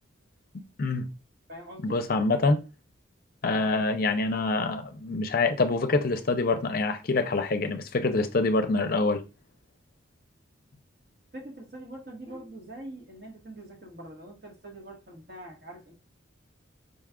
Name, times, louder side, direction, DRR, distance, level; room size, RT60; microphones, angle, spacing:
voice 1, 0.5-1.1 1.8-2.6 3.4-9.2, left 3 dB, 50° left, 0.5 m, -26 dB
voice 2, 1.5-2.1 3.4-3.7 11.3-15.9, right 1 dB, 55° right, 1.4 m, -44 dB
5.1 x 2.4 x 3.6 m
head